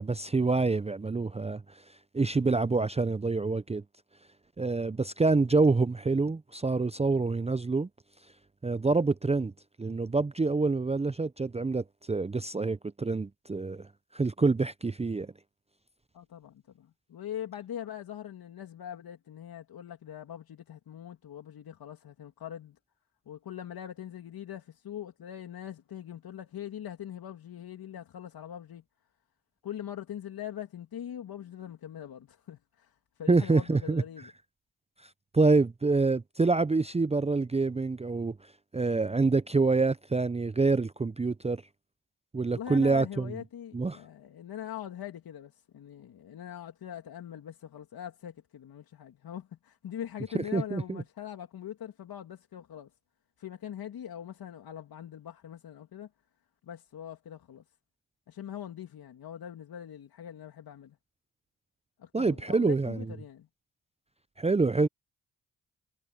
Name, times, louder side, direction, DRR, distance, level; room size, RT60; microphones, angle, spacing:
voice 1, 0.0-1.8 2.1-3.8 4.6-7.9 8.6-9.5 9.8-13.9 14.1-15.3 33.3-34.3 35.3-38.4 38.7-41.6 42.3-43.3 43.7-44.0 50.5-51.0 62.1-63.0 64.4-64.9, right 3 dB, 15° right, 0.6 m, -26 dB
voice 2, 16.1-22.8 23.3-28.8 29.6-32.9 33.2-34.3 42.5-52.9 53.4-56.1 56.7-57.6 58.3-61.0 62.0-63.5, left 10 dB, 70° left, 2.8 m, -42 dB
supercardioid pair, 45°, 37 cm